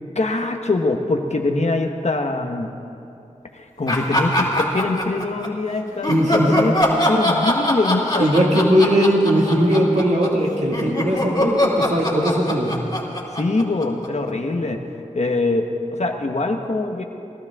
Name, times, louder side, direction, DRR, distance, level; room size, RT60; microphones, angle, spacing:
voice 1, 0.1-2.7 3.5-6.8 7.1-8.4 13.4-14.8 15.1-17.0, left 2 dB, 60° left, 4 dB, 1.1 m, -23 dB
sound 1, 3.9-5.5 6.0-14.3, left 1 dB, 35° left, 2.6 m, -22 dB
voice 2, 6.1-6.6 8.2-12.7, equal, 65° right, -2 dB, 2.2 m, -19 dB
19.0 x 13.0 x 3.6 m, 2.7 s
wide cardioid pair, 50°, 13 cm